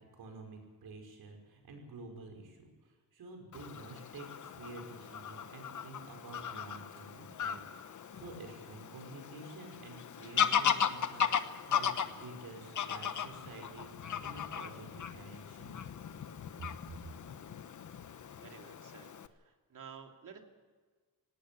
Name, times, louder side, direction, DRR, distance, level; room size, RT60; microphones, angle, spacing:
voice 1, 0.2-7.6 7.8-15.8 16.6-16.7, right 3 dB, 85° right, 3 dB, 5.6 m, -50 dB
Fowl / Bird vocalization bird call bird song, 3.5-19.3, left 8 dB, 55° left, 1.1 m, -37 dB
voice 2, 18.3-20.4, right 6 dB, 60° right, 3 dB, 2.8 m, -52 dB
18.0 x 18.0 x 8.6 m, 1.4 s
wide cardioid pair, 120°, 35 cm